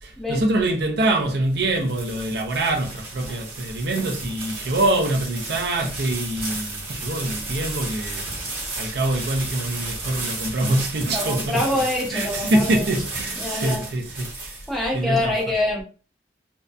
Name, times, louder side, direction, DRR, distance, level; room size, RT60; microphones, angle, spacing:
voice 1, 0.0-11.8 12.1-14.6 14.9-15.3, right 1 dB, 60° right, 0.4 m, -25 dB
sound 1, 1.4-15.0, right 2 dB, 30° right, 1.0 m, -33 dB
voice 2, 11.1-12.9 13.4-13.8 14.7-15.8, left 1 dB, ahead, 0.6 m, -25 dB
2.6 x 2.1 x 2.3 m
head